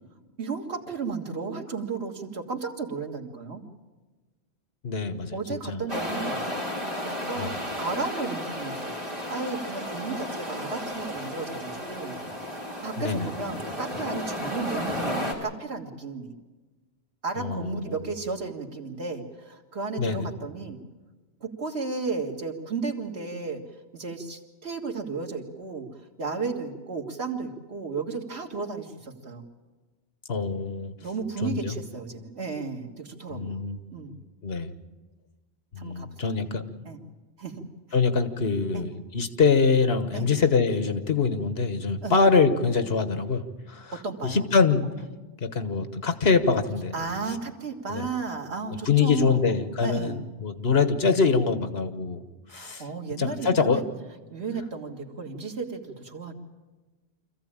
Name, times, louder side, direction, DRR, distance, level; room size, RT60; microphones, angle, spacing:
voice 1, 0.4-3.6 5.3-6.4 7.0-12.1 12.8-16.4 17.2-20.8 21.4-23.6 23.9-25.9 26.2-29.4 31.0-33.7 33.9-34.2 35.8-36.4 36.8-37.0 37.4-37.6 38.7-38.9 40.1-40.3 42.0-42.2 43.9-44.4 44.8-44.9 46.9-50.2 52.5-53.8 54.3-56.3, right 4 dB, 80° right, 2 dB, 2.2 m, -34 dB
voice 2, 4.8-5.8 7.4-7.5 13.0-13.3 17.4-18.0 20.0-20.3 30.3-30.9 31.4-31.8 33.3-33.8 34.4-34.7 35.7-36.6 37.9-43.9 44.2-44.9 45.4-46.9 47.9-48.1 48.8-52.2 52.5-52.8 53.2-53.8, left 4 dB, 70° left, 10 dB, 1.5 m, -24 dB
sound 1, 5.9-15.3, left 1 dB, 40° right, 3.7 m, -33 dB
25.5 x 15.0 x 8.8 m, 1.3 s
omnidirectional pair, 1.1 m